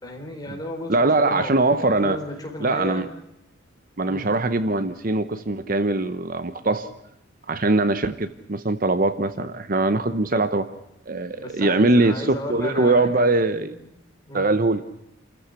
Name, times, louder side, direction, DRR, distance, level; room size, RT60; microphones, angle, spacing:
voice 1, 0.0-3.1 4.1-4.3 9.4-9.5 11.4-13.3 13.7-13.9 14.3-14.4, left 1 dB, 20° left, 2 dB, 4.4 m, -34 dB
voice 2, 0.9-2.2 2.6-3.1 4.0-6.9 7.5-10.7 11.1-13.7 14.3-14.8, right 2 dB, 45° right, 12 dB, 0.8 m, -22 dB
28.0 x 14.5 x 8.2 m, 0.84 s
head